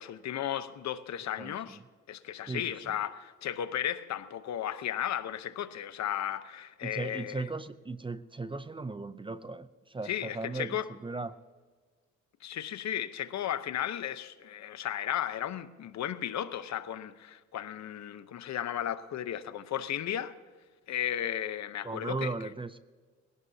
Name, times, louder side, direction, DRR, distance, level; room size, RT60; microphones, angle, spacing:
voice 1, 0.0-1.8 2.1-7.4 10.0-10.9 12.4-20.4 20.9-22.3, left 10 dB, 65° left, 0.9 m, -35 dB
voice 2, 1.4-1.8 2.5-2.9 6.8-11.3 21.8-22.8, right 3 dB, 15° right, 0.5 m, -37 dB
21.0 x 17.5 x 2.8 m
cardioid pair, 90°, 30 cm